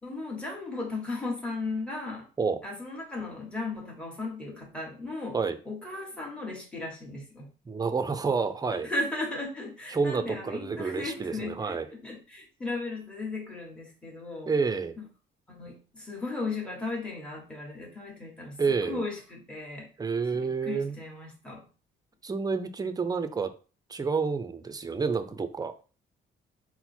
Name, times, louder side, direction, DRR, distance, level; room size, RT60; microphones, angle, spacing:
voice 1, 0.0-2.3 2.6-5.4 5.6-7.5 8.7-14.5 15.0-15.1 15.5-19.9 20.3-21.7, left 2 dB, 5° left, 1.4 m, -36 dB
voice 2, 7.7-8.9 9.9-11.9 14.5-15.0 18.6-19.0 20.0-21.0 22.2-23.5 23.9-25.7, right 5 dB, 20° right, 0.5 m, -29 dB
4.0 x 2.1 x 4.3 m
cardioid pair, 90°, 20 cm